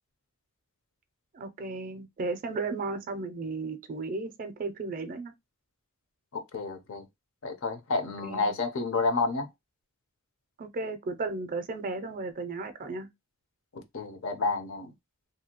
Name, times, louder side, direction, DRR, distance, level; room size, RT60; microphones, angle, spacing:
voice 1, 1.3-5.3 8.2-8.6 10.6-13.1, right 3 dB, 40° right, 0.4 m, -34 dB
voice 2, 6.3-7.1 7.4-9.5 13.7-14.9, left 3 dB, 60° left, 0.6 m, -30 dB
2.7 x 2.2 x 2.8 m
head